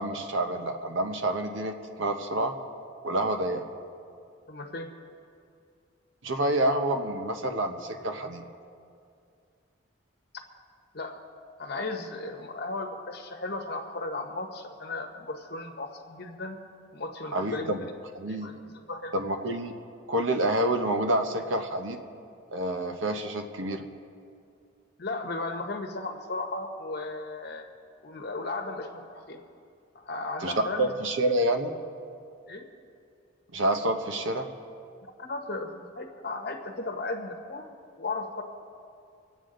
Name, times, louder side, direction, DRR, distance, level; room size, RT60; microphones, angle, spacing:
voice 1, 0.0-2.5 3.0-3.6 6.2-8.4 17.3-17.8 18.1-18.5 19.1-19.7 20.1-22.0 22.5-23.8 30.4-30.5 30.8-31.7 33.5-34.5, right 1 dB, 75° right, 5 dB, 1.0 m, -28 dB
voice 2, 4.5-4.9 10.3-10.4 10.9-11.2 11.6-16.6 16.9-17.9 18.3-19.2 25.0-27.7 28.0-29.4 29.9-30.9 32.5-32.7 35.2-37.7 38.0-38.4, left 2 dB, 50° left, 4 dB, 1.0 m, -35 dB
24.5 x 8.3 x 3.9 m, 2.4 s
head